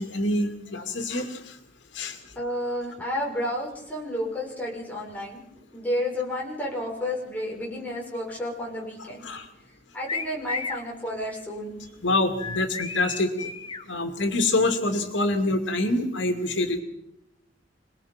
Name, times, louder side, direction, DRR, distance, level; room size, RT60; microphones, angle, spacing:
voice 1, 0.0-1.6 1.9-2.2 9.2-9.5 12.0-13.5 13.9-16.8, left 2 dB, 85° left, 5 dB, 2.5 m, -26 dB
voice 2, 2.3-5.4 5.7-9.3 9.9-11.9, left 1 dB, 10° left, -3 dB, 6.7 m, -31 dB
sound 1, 10.1-10.9 12.4-13.8, left 4 dB, 30° left, 1.4 m, -33 dB
27.0 x 20.0 x 5.9 m, 0.86 s
head